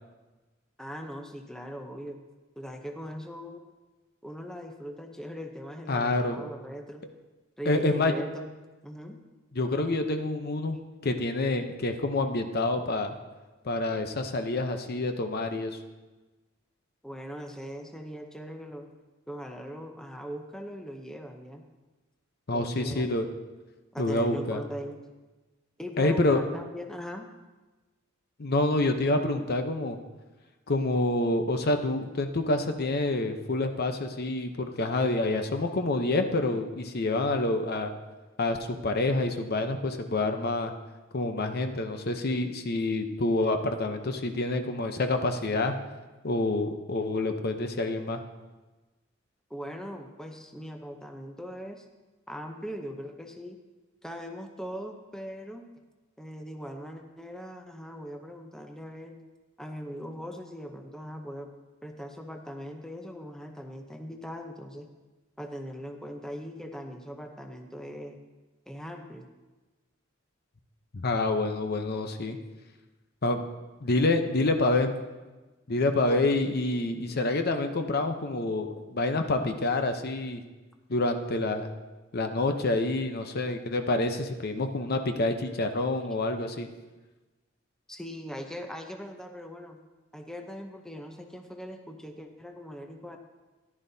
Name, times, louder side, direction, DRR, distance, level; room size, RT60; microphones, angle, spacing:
voice 1, 0.8-2.2 2.6-3.7 4.2-7.1 7.6-8.5 8.8-9.2 17.0-18.9 19.3-21.7 22.5-23.1 23.9-25.0 25.8-27.3 49.5-51.8 52.3-53.6 54.0-55.7 56.2-59.2 59.6-61.5 61.8-64.9 65.4-68.2 68.7-69.3 76.0-76.3 87.9-89.8 90.1-93.2, equal, 5° left, 3 dB, 0.7 m, -40 dB
voice 2, 5.9-6.4 7.7-8.1 9.6-13.1 13.6-15.8 22.5-23.3 24.0-24.6 26.0-26.4 28.4-30.0 30.7-37.9 38.4-40.7 41.1-45.7 46.2-48.2 70.9-72.4 73.2-73.4 73.8-74.9 75.7-80.4 80.9-81.7 82.1-86.7, left 2 dB, 50° left, 6 dB, 0.8 m, -27 dB
14.5 x 11.0 x 2.7 m, 1.2 s
head